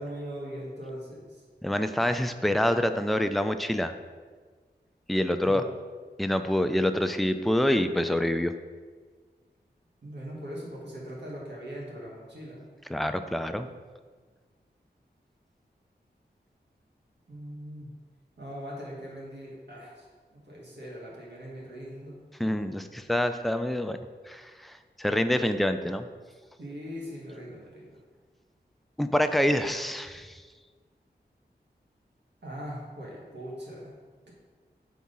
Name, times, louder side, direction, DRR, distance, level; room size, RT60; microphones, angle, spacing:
voice 1, 0.0-1.4 5.4-5.7 10.0-12.7 17.3-17.9 18.4-22.2 26.6-28.0 32.4-34.0, equal, 80° right, -4 dB, 2.0 m, -40 dB
voice 2, 1.6-3.9 5.1-5.6 6.2-8.5 12.9-13.7 22.4-24.0 24.3-26.1 29.0-30.4, left 1 dB, ahead, 8 dB, 0.4 m, -26 dB
6.0 x 3.7 x 5.5 m, 1.5 s
wide cardioid pair, 70°, 18 cm